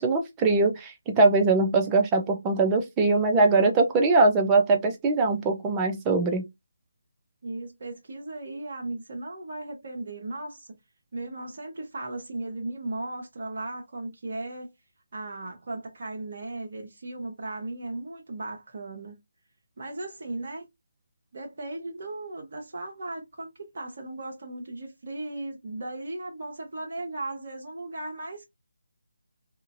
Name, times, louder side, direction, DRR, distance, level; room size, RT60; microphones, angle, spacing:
voice 1, 0.0-6.4, right 3 dB, 15° right, 0.5 m, -22 dB
voice 2, 7.4-10.7 11.1-14.7 15.1-19.2 19.8-20.6 21.3-28.5, right 2 dB, 50° right, 0.9 m, -36 dB
2.8 x 2.5 x 2.5 m
figure-of-eight pair, 155°, 0 cm